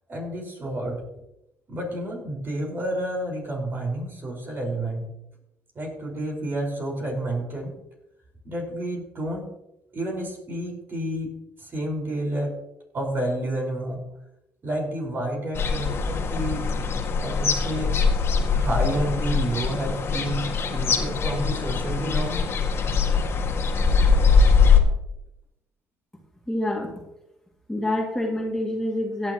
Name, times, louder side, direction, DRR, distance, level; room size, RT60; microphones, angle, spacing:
voice 1, 0.1-1.0 1.7-5.1 5.7-7.7 8.4-9.5 9.9-12.5 12.9-14.0 14.6-16.6 17.2-17.9 18.5-22.5, right 1 dB, 40° right, 0 dB, 5.2 m, -30 dB
sound 1, 15.5-24.8, left 5 dB, 50° left, 2.0 m, -22 dB
voice 2, 26.5-26.9 27.7-29.3, left 1 dB, 10° left, -2 dB, 2.4 m, -27 dB
17.0 x 10.0 x 3.1 m, 0.90 s
cardioid pair, 85°, 6 cm